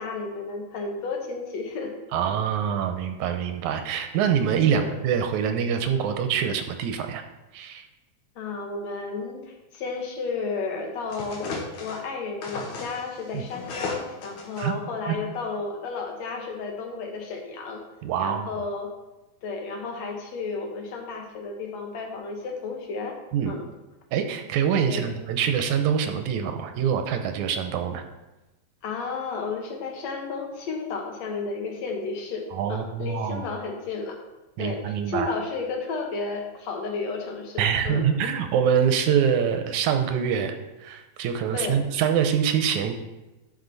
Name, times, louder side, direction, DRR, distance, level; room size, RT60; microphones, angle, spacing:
voice 1, 0.0-2.0 4.7-4.9 8.4-17.8 18.2-18.9 19.4-23.2 23.5-23.6 24.9-25.2 28.8-34.2 34.6-38.1 41.5-41.8, left 4 dB, 70° left, 2 dB, 2.3 m, -32 dB
voice 2, 2.1-7.2 7.5-7.9 13.3-13.4 14.6-14.7 15.1-15.2 18.0-18.5 23.3-23.6 24.1-28.0 32.5-33.4 34.6-35.3 37.6-40.5 40.8-43.0, right 8 dB, 85° right, 7 dB, 2.2 m, -25 dB
sound 1, 11.1-12.0 12.4-14.6, left 3 dB, 85° left, 2.6 m, -35 dB
12.0 x 5.1 x 4.0 m, 1.1 s
omnidirectional pair, 3.3 m